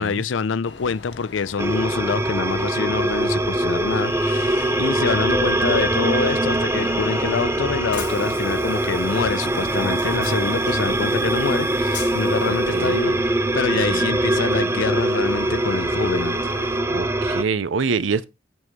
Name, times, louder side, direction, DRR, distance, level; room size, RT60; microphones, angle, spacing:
voice 1, 0.0-16.4, left 5 dB, 80° left, 0.5 m, -26 dB
Train, 0.7-16.8, left 6 dB, 60° left, 0.8 m, -38 dB
sound 1, 1.6-17.4, right 1 dB, 15° right, 0.4 m, -22 dB
voice 2, 12.5-13.2 13.7-14.1 16.9-18.2, right 5 dB, 90° right, 0.6 m, -26 dB
7.6 x 6.1 x 3.5 m
head